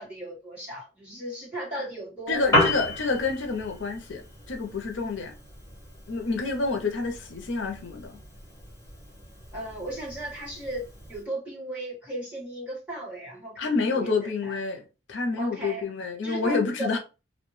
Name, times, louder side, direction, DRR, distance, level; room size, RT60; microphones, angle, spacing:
voice 1, 0.0-2.4 9.5-14.6 15.4-15.9 16.2-17.0, right 1 dB, 5° right, 1.5 m, -36 dB
voice 2, 2.3-5.3 6.1-8.2 13.6-14.8 15.1-17.0, left 4 dB, 80° left, 0.6 m, -28 dB
Piano, 2.3-11.3, left 1 dB, 15° left, 1.2 m, -33 dB
2.6 x 2.1 x 3.1 m
head